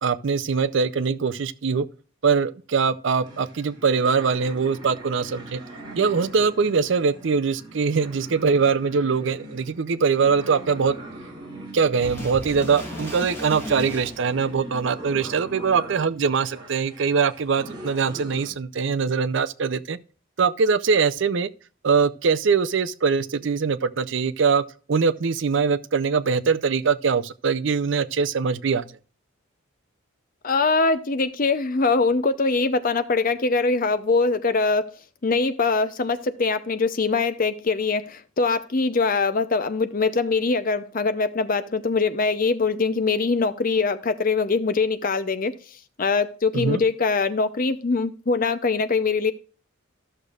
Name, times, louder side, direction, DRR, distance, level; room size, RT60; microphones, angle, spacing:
voice 1, 0.0-1.9 2.2-5.6 6.0-11.0 11.7-20.0 20.4-21.5 21.8-24.6 24.9-28.9 46.5-46.8, right 5 dB, 60° right, 0.5 m, -22 dB
sound 1, 3.2-18.5, right 1 dB, 25° right, 3.3 m, -41 dB
sound 2, 12.0-14.5 15.5-15.6, left 1 dB, 10° left, 2.5 m, -36 dB
voice 2, 30.4-34.9 35.2-45.5 46.0-49.3, left 4 dB, 40° left, 0.6 m, -23 dB
13.5 x 6.6 x 2.4 m
head